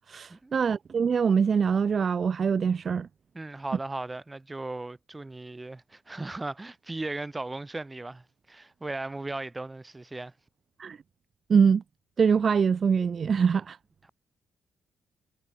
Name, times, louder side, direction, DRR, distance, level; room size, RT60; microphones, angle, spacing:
voice 1, 0.1-3.1 10.8-11.0 11.5-11.8 12.2-13.8, right 6 dB, 45° right, 1.0 m, -24 dB
voice 2, 3.3-10.3, right 2 dB, 15° right, 4.8 m, -37 dB
cardioid pair, 90°, 0 cm